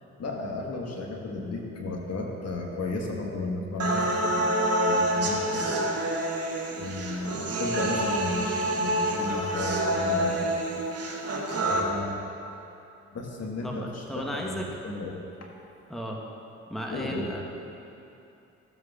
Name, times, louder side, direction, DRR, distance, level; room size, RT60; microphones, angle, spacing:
voice 1, 0.2-6.1 6.8-10.4 11.6-12.2 13.1-14.6 14.8-15.5 16.9-17.3, left 2 dB, 45° left, 0 dB, 1.4 m, -34 dB
sound 1, 3.8-11.8, right 1 dB, 45° right, 1.5 m, -27 dB
voice 2, 11.5-11.9 13.6-14.7 15.9-16.2 16.7-17.4, equal, ahead, -1 dB, 1.1 m, -35 dB
13.5 x 7.8 x 2.4 m, 2.8 s
hypercardioid pair, 45°, 34 cm